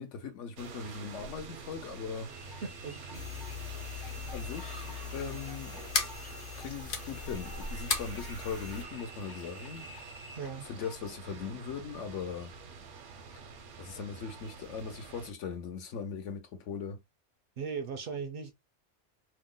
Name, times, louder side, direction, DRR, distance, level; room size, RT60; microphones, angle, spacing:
voice 1, 0.0-2.3 4.3-5.9 6.6-9.9 10.6-12.5 13.8-17.0, left 6 dB, 80° left, 1.1 m, -39 dB
sound 1, 0.6-15.3, right 4 dB, 80° right, 1.1 m, -47 dB
sound 2, 2.3-11.0, left 1 dB, 30° left, 0.4 m, -51 dB
voice 2, 2.6-3.2 10.4-10.7 17.6-18.5, right 6 dB, 60° right, 0.6 m, -38 dB
sound 3, 3.1-8.8, left 5 dB, 55° left, 0.8 m, -38 dB
2.9 x 2.0 x 3.7 m
omnidirectional pair, 1.2 m